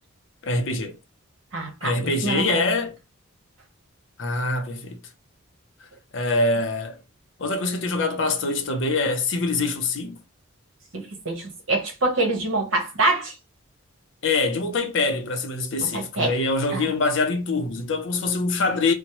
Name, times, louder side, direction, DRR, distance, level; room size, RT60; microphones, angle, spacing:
voice 1, 0.4-1.0 1.8-2.9 4.2-5.0 6.1-7.0 7.4-10.2 14.2-18.9, left 3 dB, 60° left, 0.6 m, -24 dB
voice 2, 1.5-2.6 10.9-13.3 15.8-16.3 16.7-16.9, right 2 dB, 65° right, 1.0 m, -25 dB
2.9 x 2.1 x 2.9 m
head